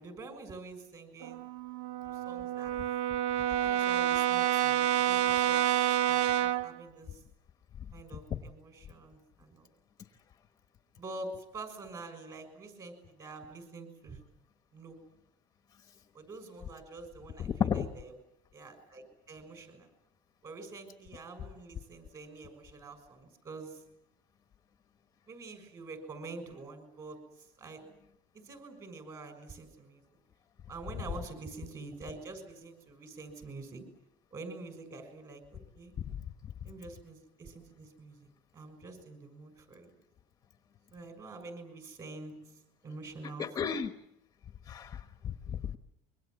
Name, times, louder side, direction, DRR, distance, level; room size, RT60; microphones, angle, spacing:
voice 1, 0.0-1.4 2.0-2.7 3.5-5.7 6.1-7.2 7.9-9.7 11.0-14.2 14.7-15.0 16.1-18.1 18.5-19.9 20.4-23.8 25.3-27.2 27.6-27.8 28.3-30.0 30.7-33.8 34.3-35.9 36.6-39.9 40.9-42.3 42.8-43.7, right 3 dB, 25° right, 8 dB, 6.4 m, -46 dB
Brass instrument, 1.2-6.8, right 11 dB, 90° right, 1.1 m, -28 dB
voice 2, 17.4-17.9 36.1-36.2 43.4-44.0 44.7-45.8, left 7 dB, 25° left, 8 dB, 1.1 m, -33 dB
26.0 x 24.0 x 7.9 m, 0.78 s
cardioid pair, 170°, 14 cm